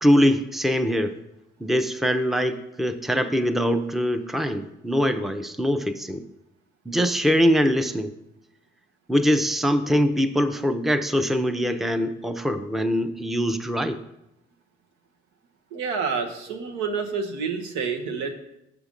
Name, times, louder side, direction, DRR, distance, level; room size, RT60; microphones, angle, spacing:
voice 1, 0.0-1.2 1.6-6.3 6.9-8.1 9.1-14.0, equal, ahead, 8 dB, 0.6 m, -23 dB
voice 2, 15.7-18.3, right 5 dB, 75° right, 3 dB, 1.0 m, -28 dB
7.0 x 5.7 x 5.2 m, 0.87 s
hypercardioid pair, 45°, 29 cm